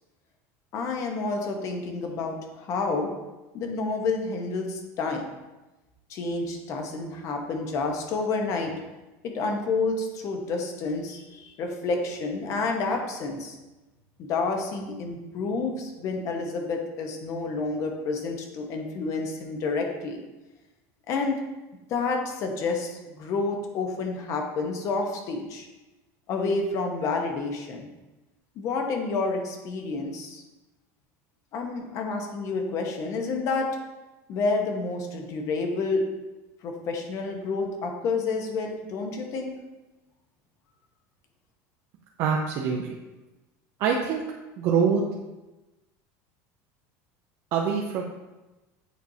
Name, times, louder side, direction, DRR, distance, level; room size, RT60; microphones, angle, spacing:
voice 1, 0.7-3.1 3.5-5.2 6.1-8.7 9.2-13.6 14.2-20.2 21.1-21.4 21.9-25.7 26.3-27.9 28.6-30.4 31.5-33.7 34.3-36.1 36.6-39.5, left 3 dB, 45° left, 3 dB, 1.0 m, -29 dB
voice 2, 42.2-42.9 43.8-44.2 44.6-45.0 47.5-48.0, right 6 dB, 50° right, -1 dB, 0.6 m, -24 dB
8.2 x 4.5 x 2.8 m, 1.1 s
cardioid pair, 155°, 8 cm